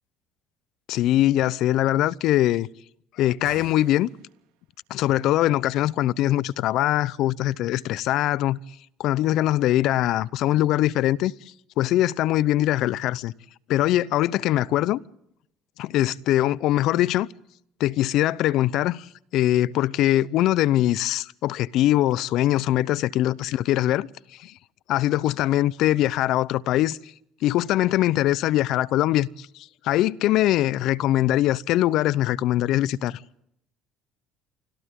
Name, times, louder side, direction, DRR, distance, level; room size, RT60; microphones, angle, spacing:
voice 1, 0.9-2.7 3.2-4.1 4.9-8.6 9.0-11.3 11.8-13.3 13.7-15.0 15.8-17.3 17.8-24.1 24.4-24.5 24.9-27.0 27.4-29.5 29.8-33.2, left 14 dB, 65° left, 0.7 m, -22 dB
sound 1, 3.3-4.6, right 10 dB, 80° right, 2.0 m, -47 dB
29.5 x 25.0 x 3.8 m
supercardioid pair, 75°, 0 cm